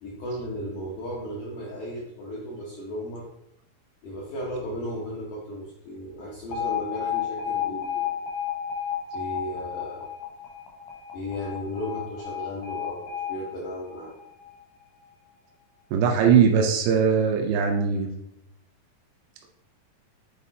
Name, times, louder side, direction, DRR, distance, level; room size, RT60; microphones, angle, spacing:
voice 1, 0.0-3.3 4.0-8.1 9.1-10.0 11.1-14.1, equal, 70° left, -5 dB, 1.8 m, -35 dB
Alarm, 6.5-14.6, left 9 dB, 90° left, 3.3 m, -32 dB
voice 2, 15.9-18.1, right 7 dB, 90° right, 2 dB, 2.8 m, -20 dB
8.4 x 4.1 x 2.8 m, 0.81 s
omnidirectional pair, 4.7 m